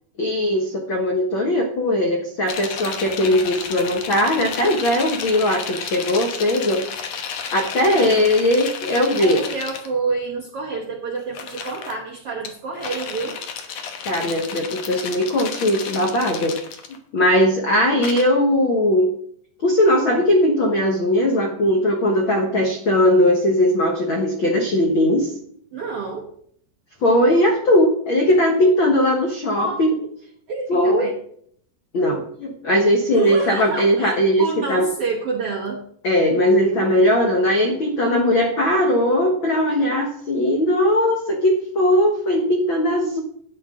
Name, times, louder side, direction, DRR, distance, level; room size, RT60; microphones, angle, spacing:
voice 1, 0.2-6.8 7.5-9.4 14.0-16.6 17.1-19.1 19.6-25.3 27.0-29.9 30.7-31.1 31.9-34.9 36.0-43.2, left 1 dB, 80° left, 2 dB, 1.1 m, -19 dB
sound 1, 2.5-9.9 11.2-11.9 12.4-17.2 18.0-18.2, left 7 dB, 65° left, 1.8 m, -32 dB
voice 2, 7.8-8.2 9.2-13.4 25.7-26.3 29.5-29.9 30.5-31.2 33.1-34.1 34.4-35.8, right 4 dB, 70° right, -1 dB, 1.4 m, -28 dB
11.5 x 9.1 x 3.7 m, 0.63 s
omnidirectional pair, 4.3 m